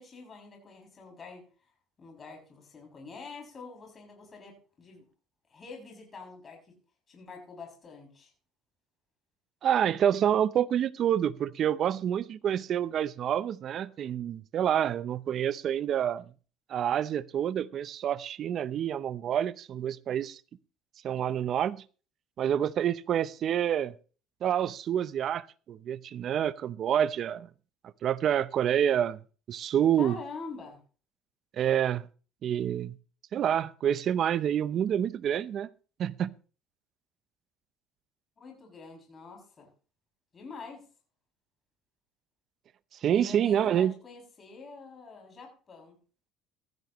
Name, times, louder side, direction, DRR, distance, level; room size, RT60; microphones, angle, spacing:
voice 1, 0.0-1.4 2.0-5.1 5.5-6.6 7.1-8.3 30.0-30.8 38.4-39.7 40.3-40.8 43.1-46.0, left 4 dB, 30° left, 6.7 m, -46 dB
voice 2, 9.6-16.3 16.7-20.4 21.0-21.8 22.4-23.9 24.4-27.5 28.0-29.2 29.5-30.2 31.5-32.0 32.4-33.0 33.3-35.7 36.0-36.3 43.0-43.9, right 9 dB, 50° right, 0.7 m, -28 dB
16.0 x 14.0 x 3.1 m
cardioid pair, 115°, 0 cm